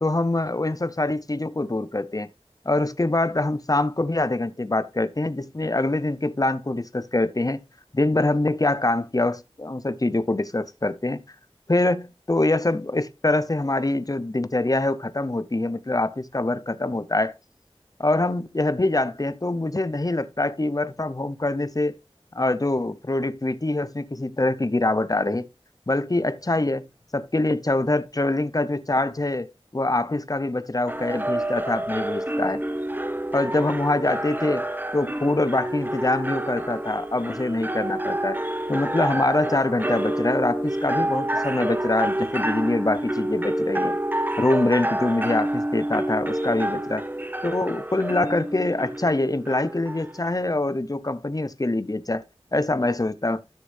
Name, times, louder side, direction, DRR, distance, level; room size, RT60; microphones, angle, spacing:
voice 1, 0.0-2.3 2.6-7.6 7.9-11.2 11.7-17.3 18.0-22.0 22.3-25.5 25.9-26.9 27.1-32.6 33.3-34.6 34.9-38.4 38.7-44.0 44.4-47.0 47.4-52.2 52.5-53.4, left 2 dB, 35° left, 0.7 m, -24 dB
sound 1, 30.9-50.4, right 1 dB, 20° right, 0.8 m, -28 dB
13.0 x 6.8 x 2.6 m
wide cardioid pair, 45°, 11 cm